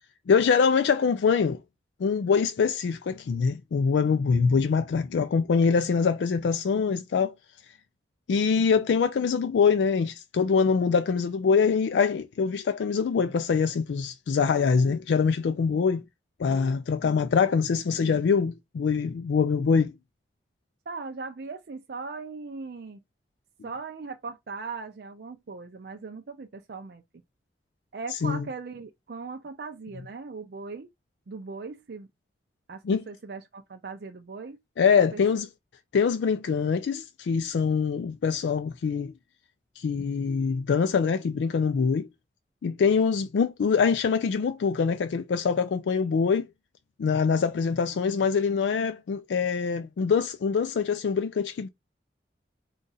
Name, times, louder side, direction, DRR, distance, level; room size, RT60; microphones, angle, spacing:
voice 1, 0.3-1.6 2.0-7.3 8.3-16.0 16.4-19.9 28.2-28.4 32.8-33.0 34.8-35.5 35.9-39.1 39.8-42.1 42.6-46.5 47.0-51.7, left 5 dB, 85° left, 0.4 m, -24 dB
voice 2, 20.9-23.0 23.6-27.0 27.9-30.9 31.3-32.1 32.7-34.6 34.9-35.2, right 4 dB, 65° right, 0.5 m, -39 dB
3.9 x 2.4 x 4.0 m
head